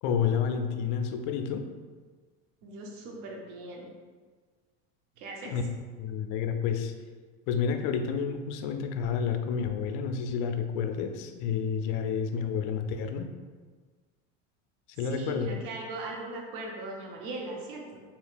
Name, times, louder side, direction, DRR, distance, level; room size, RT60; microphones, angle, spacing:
voice 1, 0.0-1.7 5.4-5.6 6.0-6.9 7.5-13.3 15.0-15.5, left 7 dB, 55° left, 6 dB, 0.4 m, -30 dB
voice 2, 2.6-3.9 5.2-5.5 15.0-18.0, right 2 dB, 55° right, 0 dB, 0.8 m, -39 dB
3.2 x 2.9 x 2.4 m, 1.5 s
hypercardioid pair, 90°, 37 cm